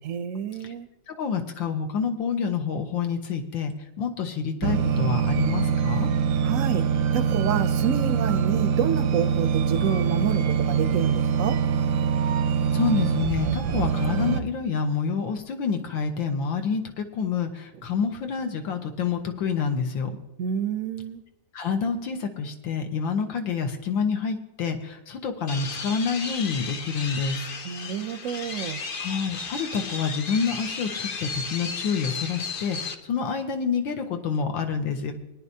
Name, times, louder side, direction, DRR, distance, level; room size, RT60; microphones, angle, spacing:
voice 1, 0.0-0.9 6.4-6.8 7.1-11.6 20.4-21.2 27.6-28.8, right 8 dB, 70° right, 11 dB, 0.7 m, -28 dB
voice 2, 1.1-6.1 12.7-20.1 21.5-27.5 29.0-35.1, left 6 dB, 85° left, 5 dB, 1.8 m, -28 dB
sound 1, 4.6-14.4, right 7 dB, 90° right, 1.4 m, -24 dB
sound 2, 25.5-32.9, left 4 dB, 60° left, 0.5 m, -34 dB
19.0 x 10.0 x 2.7 m, 0.95 s
omnidirectional pair, 2.0 m